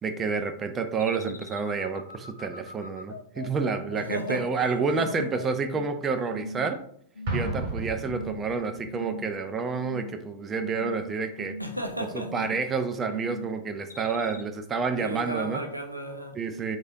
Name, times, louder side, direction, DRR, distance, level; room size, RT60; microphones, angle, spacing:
voice 1, 0.0-6.8 7.3-11.5 12.1-15.6 16.4-16.8, right 5 dB, 20° right, 0.3 m, -29 dB
sound 1, 1.0-6.0 6.3-6.8 7.1-7.7 8.0-8.5 8.8-9.4 9.7-10.2 10.5-11.0 11.4-11.8 12.2-12.7 13.1-13.5 13.9-14.4, left 2 dB, 75° left, 0.3 m, -40 dB
voice 2, 3.9-5.3 11.6-12.8 15.0-16.3, equal, 90° right, 0.4 m, -35 dB
Explosion, 7.3-8.9, right 2 dB, 50° right, 0.8 m, -33 dB
3.2 x 2.3 x 2.6 m
figure-of-eight pair, 90°, 0 cm